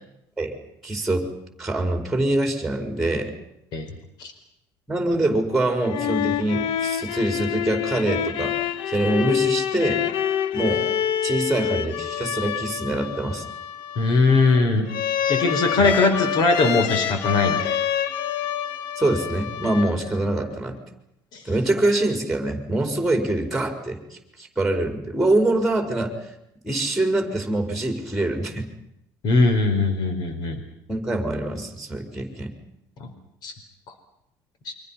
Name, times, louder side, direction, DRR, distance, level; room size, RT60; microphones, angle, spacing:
voice 1, 0.8-1.3 1.6-3.3 4.9-8.6 8.9-10.0 10.5-10.8 11.2-13.4 15.8-15.9 19.0-20.8 21.4-26.1 26.6-28.7 30.9-32.5, right 2 dB, ahead, 4 dB, 4.8 m, -24 dB
sound 1, 5.7-20.3, left 10 dB, 80° left, 1.2 m, -27 dB
voice 2, 14.0-14.9 15.3-17.8 21.3-21.4 29.2-30.6 33.0-33.1 33.4-33.5 34.6-34.7, left 3 dB, 60° left, 7 dB, 4.6 m, -20 dB
29.5 x 24.5 x 5.8 m, 0.80 s
cardioid pair, 120°, 8 cm